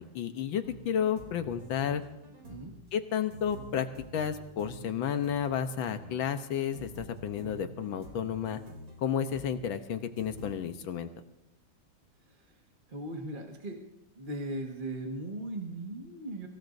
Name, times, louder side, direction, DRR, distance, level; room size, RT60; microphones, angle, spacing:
voice 1, 0.0-2.0 2.9-3.9 4.1-8.6 9.0-11.1, left 8 dB, 75° left, 9 dB, 1.6 m, -32 dB
sound 1, 0.6-10.5, right 1 dB, 70° right, 4.0 m, -49 dB
voice 2, 12.3-12.6 12.9-13.8 14.1-16.5, right 1 dB, 25° right, 1 dB, 1.5 m, -38 dB
25.0 x 16.0 x 2.6 m, 0.86 s
omnidirectional pair, 2.2 m